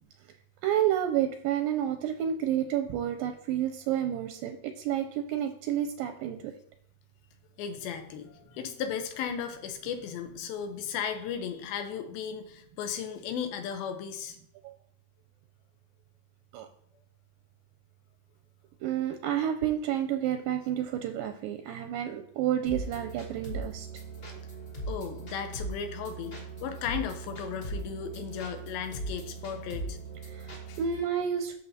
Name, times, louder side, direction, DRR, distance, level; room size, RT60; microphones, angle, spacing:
voice 1, 0.6-6.5 16.5-16.7 18.8-23.9 30.3-31.5, right 10 dB, 80° right, 6 dB, 2.1 m, -30 dB
voice 2, 7.6-14.4 24.9-30.8, left 7 dB, 80° left, 7 dB, 2.7 m, -36 dB
sound 1, 22.7-31.0, right 2 dB, 30° left, 2.7 m, -39 dB
12.0 x 6.8 x 2.8 m, 0.70 s
omnidirectional pair, 4.4 m